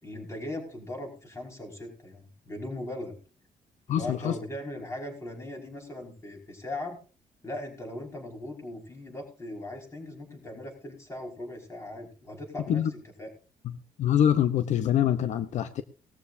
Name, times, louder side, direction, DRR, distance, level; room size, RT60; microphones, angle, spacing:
voice 1, 0.0-3.2 3.9-7.0 7.4-12.9 13.2-13.3, left 1 dB, 20° left, 1 dB, 5.3 m, -39 dB
voice 2, 3.9-4.4 12.7-12.9 14.0-15.8, left 10 dB, 65° left, 11 dB, 0.8 m, -24 dB
19.0 x 14.0 x 2.7 m, 0.35 s
cardioid pair, 135°, 13 cm